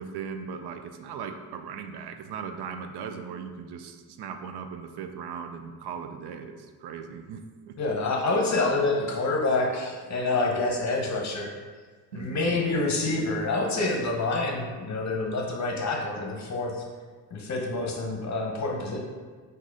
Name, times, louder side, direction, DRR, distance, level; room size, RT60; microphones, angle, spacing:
voice 1, 0.0-7.8 12.1-12.6, right 6 dB, 75° right, 6 dB, 0.5 m, -38 dB
voice 2, 7.8-11.5 12.1-16.8 17.3-19.0, left 2 dB, 45° left, 0 dB, 0.9 m, -27 dB
4.0 x 2.7 x 4.7 m, 1.5 s
cardioid pair, 100°, 40 cm